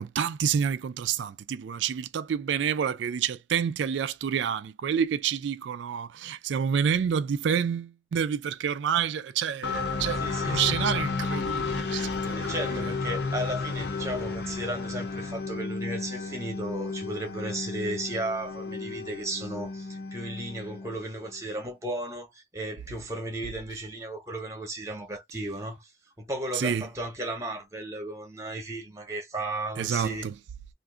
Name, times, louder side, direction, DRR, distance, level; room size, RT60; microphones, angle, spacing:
voice 1, 0.0-12.9 26.5-26.9 29.8-30.3, right 7 dB, 80° right, 0.3 m, -28 dB
sound 1, 9.6-21.4, left 4 dB, 65° left, 0.6 m, -32 dB
voice 2, 10.2-10.8 12.3-25.9 26.2-30.3, right 1 dB, 15° right, 0.8 m, -35 dB
2.5 x 2.3 x 3.7 m
head